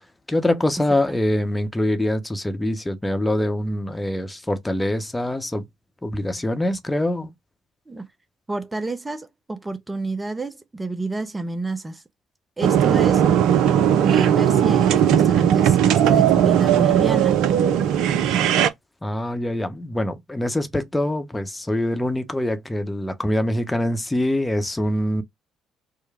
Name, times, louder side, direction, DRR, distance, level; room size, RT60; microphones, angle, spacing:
voice 1, 0.3-5.7 6.0-7.3 19.0-25.2, left 1 dB, 10° left, 0.8 m, -24 dB
voice 2, 8.5-12.0 12.6-13.3 14.0-17.4, right 2 dB, 20° right, 0.7 m, -29 dB
sound 1, 12.6-18.7, right 9 dB, 65° right, 0.5 m, -17 dB
4.6 x 2.2 x 3.3 m
figure-of-eight pair, 50°, 0 cm